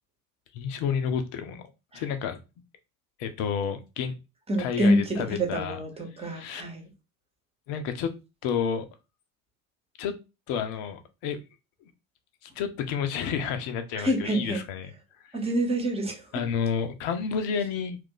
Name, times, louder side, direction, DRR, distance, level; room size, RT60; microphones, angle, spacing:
voice 1, 0.5-1.6 1.9-2.4 3.2-4.1 4.6-5.8 6.3-6.6 7.7-8.1 8.4-8.9 10.0-10.2 10.5-11.4 12.4-14.9 15.2-15.3 16.3-18.0, left 7 dB, 50° left, 0.8 m, -30 dB
voice 2, 4.5-6.9 13.9-14.6 15.3-16.3, right 1 dB, 15° right, 1.1 m, -27 dB
2.9 x 2.5 x 3.7 m
figure-of-eight pair, 70°, 44 cm